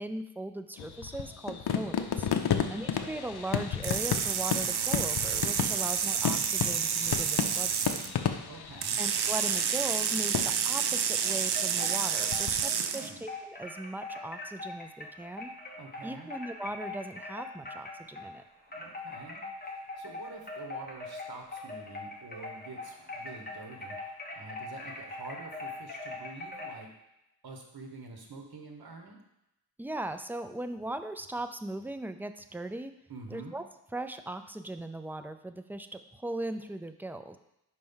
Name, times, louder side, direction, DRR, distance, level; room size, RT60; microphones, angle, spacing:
voice 1, 0.0-2.3 2.7-8.1 9.0-15.5 16.0-18.4 29.8-32.9 33.3-33.6 33.9-37.4, right 1 dB, 5° right, 8 dB, 0.3 m, -39 dB
sound 1, 0.8-12.6, left 8 dB, 80° left, 0.6 m, -34 dB
sound 2, 3.8-8.1 8.8-13.1, right 7 dB, 85° right, 0.5 m, -29 dB
voice 2, 8.4-9.0 12.9-13.2 15.8-16.3 18.7-26.9 27.4-29.2 33.1-33.6, right 3 dB, 65° right, 2 dB, 1.2 m, -47 dB
sound 3, 11.2-18.4 18.7-26.8, left 2 dB, 25° left, 1.2 m, -42 dB
5.2 x 4.5 x 5.5 m, 0.86 s
wide cardioid pair, 115°, 38 cm